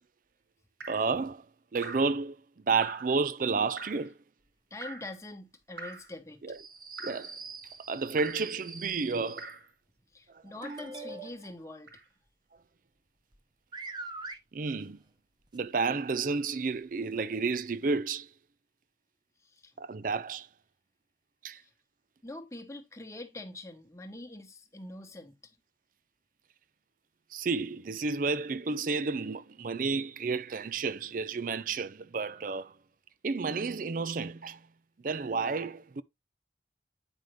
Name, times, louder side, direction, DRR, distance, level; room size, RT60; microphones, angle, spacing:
Drip, 0.8-1.1 1.8-2.2 2.8-3.2 3.8-4.1 4.8-5.1 5.8-6.1 7.0-7.3 8.2-8.5 9.4-9.7 10.6-11.0 11.9-12.0, right 3 dB, 70° right, 2.0 m, -44 dB
voice 1, 0.9-1.5 1.7-2.4 2.7-4.2 6.4-6.6 7.0-7.4 7.9-9.5 14.5-15.0 15.5-18.3 19.8-20.5 21.4-21.6 27.3-32.8 33.2-34.6 35.0-36.0, right 4 dB, 45° right, 0.4 m, -31 dB
voice 2, 4.7-6.4 10.1-11.9 19.4-19.7 21.6-21.7 22.2-25.4, left 2 dB, 15° left, 1.1 m, -44 dB
sound 1, 6.5-9.5 10.6-11.6 13.3-13.4 13.7-14.4 15.5-15.6 16.2-16.3 17.0-17.1, right 3 dB, 25° right, 0.9 m, -43 dB
9.1 x 5.2 x 3.2 m
head